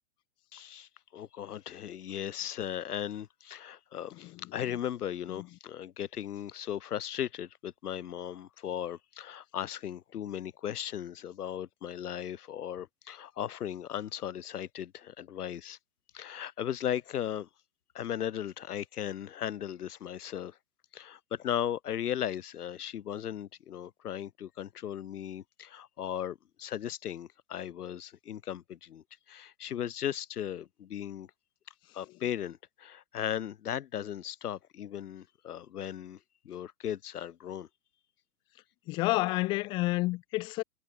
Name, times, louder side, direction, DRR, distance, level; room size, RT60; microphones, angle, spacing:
voice 1, 0.5-15.8 16.1-17.5 17.9-20.6 20.9-31.3 31.9-36.2 36.4-37.7, left 10 dB, 65° left, 4.1 m, -37 dB
voice 2, 38.9-40.6, left 20 dB, 10° left, 0.8 m, -29 dB
hypercardioid pair, 175°, 48 cm